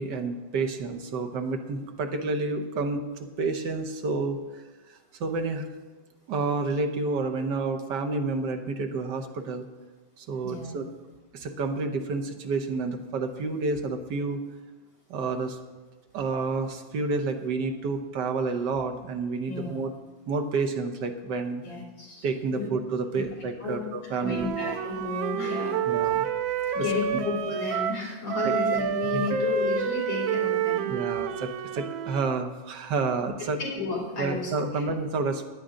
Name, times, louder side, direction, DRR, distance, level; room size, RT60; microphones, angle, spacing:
voice 1, 0.0-3.0 3.4-4.6 5.2-5.7 6.3-9.6 10.2-10.9 11.3-14.4 15.1-15.6 16.1-19.9 20.3-21.6 22.2-24.7 25.9-26.3 29.1-29.2 30.9-33.6 34.2-35.5, right 3 dB, 65° right, 6 dB, 1.6 m, -29 dB
voice 2, 10.4-10.8 19.5-19.8 21.6-22.3 22.5-22.6 23.1-23.2 23.6-23.8 24.2-26.0 26.7-30.9 33.6-34.8, left 3 dB, 70° left, -3 dB, 4.0 m, -32 dB
Wind instrument woodwind instrument, 24.2-28.0 28.3-32.3, right 7 dB, 90° right, 1.5 m, -29 dB
15.0 x 10.0 x 3.8 m, 1.2 s
omnidirectional pair, 2.1 m